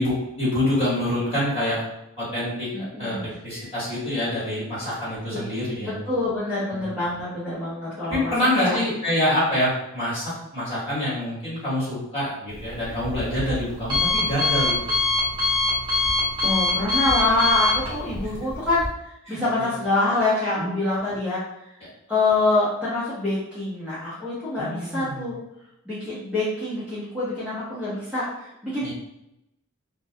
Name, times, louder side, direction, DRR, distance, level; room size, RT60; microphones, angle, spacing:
voice 1, 0.0-1.8 2.2-2.7 3.0-5.9 6.7-6.8 8.1-14.9 19.2-19.7 20.5-20.7 24.6-25.3 28.8-28.9, left 1 dB, 30° left, -9 dB, 1.3 m, -26 dB
voice 2, 2.7-3.3 5.3-5.4 5.8-8.8 16.4-21.4 22.1-25.4 25.9-28.9, left 2 dB, 5° right, -12 dB, 0.6 m, -25 dB
Alarm, 12.5-18.9, left 3 dB, 20° right, 0.9 m, -25 dB
2.2 x 2.0 x 2.6 m, 0.86 s
head